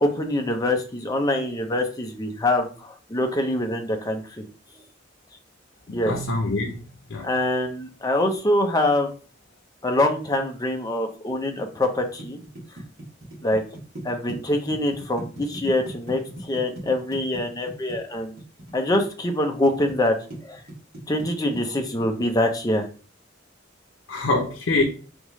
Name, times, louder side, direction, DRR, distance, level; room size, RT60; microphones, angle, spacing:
voice 1, 0.0-4.4 5.9-6.1 7.2-9.1 9.8-12.4 13.4-13.6 14.0-18.3 18.7-20.1 20.4-20.6 21.1-22.9, left 1 dB, 20° left, 0.6 m, -24 dB
voice 2, 5.9-7.3 24.1-24.8, left 2 dB, 75° left, 0.7 m, -25 dB
sound 1, 11.7-19.9 20.3-22.1, right 1 dB, 55° right, 1.7 m, -38 dB
3.6 x 3.5 x 3.1 m
head